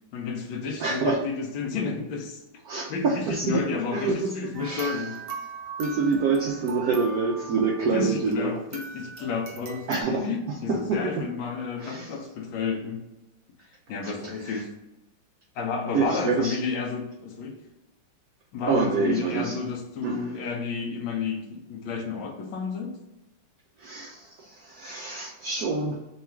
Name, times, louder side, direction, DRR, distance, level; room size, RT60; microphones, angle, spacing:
voice 1, 0.1-2.4 2.9-5.1 7.9-13.0 13.9-14.7 15.5-17.6 18.5-23.0, left 5 dB, 75° left, 3 dB, 1.5 m, -31 dB
voice 2, 0.8-1.2 2.6-4.3 4.6-5.1 5.8-8.6 9.9-11.2 11.8-12.1 14.0-14.6 15.9-16.6 18.7-19.6 20.0-20.4 23.8-26.0, right 4 dB, 80° right, -1 dB, 0.8 m, -27 dB
sound 1, 4.5-8.4 8.7-10.0, right 4 dB, 60° right, 1.3 m, -40 dB
3.8 x 2.4 x 4.3 m, 0.97 s
omnidirectional pair, 2.2 m